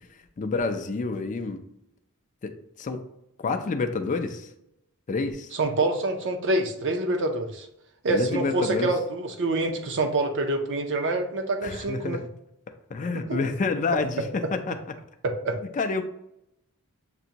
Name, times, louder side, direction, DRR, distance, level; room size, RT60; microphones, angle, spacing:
voice 1, 0.1-1.6 2.4-2.5 2.8-3.0 3.4-4.5 5.1-5.5 8.1-8.9 11.6-12.3 12.9-14.8 15.7-16.0, left 4 dB, 35° left, 6 dB, 0.4 m, -28 dB
voice 2, 5.6-7.7 8.0-12.2 13.1-13.4 15.2-15.6, right 2 dB, 55° right, 5 dB, 0.6 m, -26 dB
6.7 x 2.6 x 2.8 m, 0.80 s
head